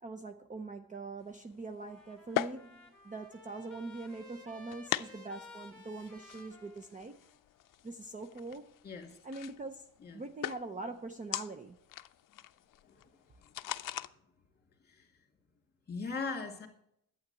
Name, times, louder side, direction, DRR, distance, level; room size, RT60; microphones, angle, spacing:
voice 1, 0.0-7.2 7.8-8.8 9.2-11.8, right 3 dB, 20° right, 0.5 m, -43 dB
sound 1, 1.3-14.1, left 12 dB, 65° left, 0.5 m, -42 dB
Trumpet, 1.8-7.4, left 3 dB, ahead, 2.4 m, -55 dB
voice 2, 8.8-9.1 10.0-10.2 12.8-13.1 13.4-13.5 13.9-14.0 14.8-15.1 15.9-16.7, left 4 dB, 25° left, 2.3 m, -40 dB
12.0 x 8.5 x 6.8 m
wide cardioid pair, 170°, 35 cm